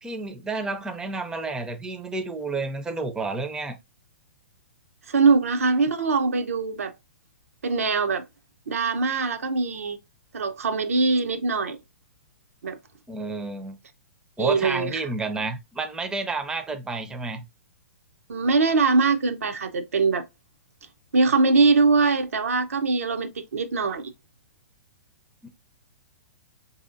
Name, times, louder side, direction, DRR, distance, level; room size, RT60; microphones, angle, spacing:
voice 1, 0.0-3.8 13.1-13.8 14.4-17.4 25.4-25.5, right 3 dB, 10° right, 0.4 m, -30 dB
voice 2, 5.1-6.9 7.6-8.2 8.7-10.0 10.3-11.8 12.6-12.8 14.4-15.0 18.3-20.2 21.1-24.1, right 4 dB, 80° right, 0.5 m, -22 dB
4.7 x 2.7 x 2.4 m
hypercardioid pair, 120°, 8 cm